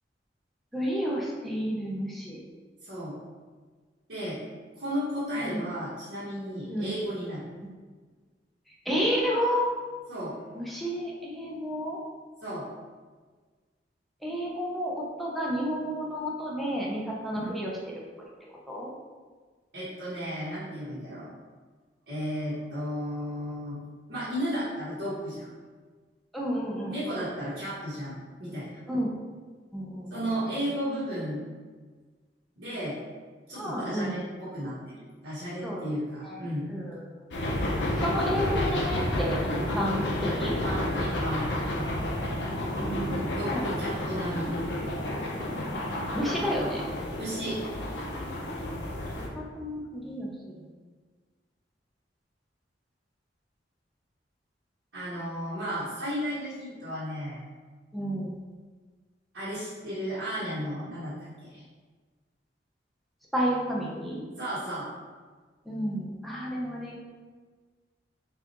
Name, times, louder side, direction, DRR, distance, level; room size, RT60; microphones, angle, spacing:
voice 1, 0.7-2.4 5.4-5.6 6.7-6.9 8.9-9.7 10.6-12.0 14.2-17.7 18.7-18.9 26.3-26.9 28.9-29.1 29.7-30.1 33.6-34.2 35.6-35.8 36.2-36.4 36.7-37.0 38.0-39.4 39.8-40.1 40.4-40.6 42.8-43.7 45.6-46.8 49.6-50.3 57.9-58.3 63.3-64.2 65.7-67.0, equal, ahead, -5 dB, 0.6 m, -31 dB
voice 2, 2.8-3.2 4.1-4.4 4.8-7.5 10.1-10.6 12.4-12.7 17.4-17.5 19.7-21.3 22.1-23.8 24.1-25.5 26.9-28.8 30.1-31.5 32.6-33.0 33.5-36.7 40.4-41.5 43.4-44.5 47.2-47.6 54.9-57.4 59.3-61.1 61.4-61.6 64.4-64.9, equal, 90° right, -12 dB, 1.3 m, -34 dB
sound 1, 37.3-49.3, left 1 dB, 75° left, 0.7 m, -30 dB
5.9 x 2.4 x 2.9 m, 1.4 s
head